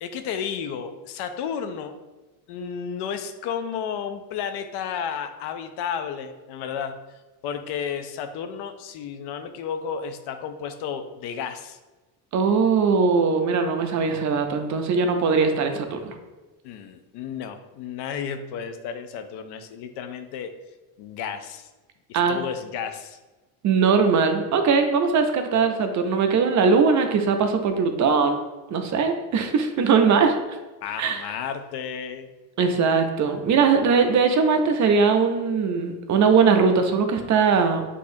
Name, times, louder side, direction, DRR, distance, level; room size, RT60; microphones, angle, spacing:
voice 1, 0.0-1.9 2.5-7.0 7.4-11.8 16.6-20.5 21.0-21.7 22.1-23.2 30.8-32.3, left 7 dB, 65° left, 8 dB, 0.6 m, -32 dB
voice 2, 12.3-16.1 22.1-22.4 23.6-28.4 28.7-30.3 31.0-31.2 32.6-37.9, right 5 dB, 40° right, 6 dB, 0.5 m, -20 dB
6.1 x 2.7 x 2.6 m, 1.1 s
cardioid pair, 105°, 44 cm